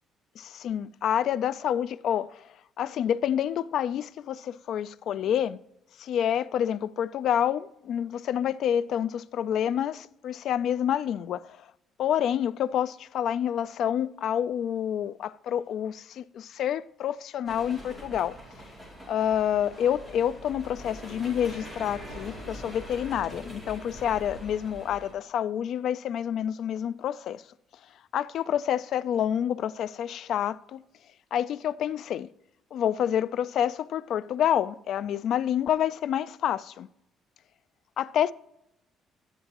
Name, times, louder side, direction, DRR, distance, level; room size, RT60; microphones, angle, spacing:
voice 1, 0.4-2.5 2.8-5.6 6.0-11.7 12.0-18.4 19.1-27.4 28.1-30.8 31.3-32.3 32.7-36.9 38.0-38.3, left 9 dB, 55° left, 0.3 m, -28 dB
sound 1, 17.5-25.1, equal, 5° right, 2.9 m, -43 dB
12.0 x 9.5 x 2.9 m
cardioid pair, 165°, 0 cm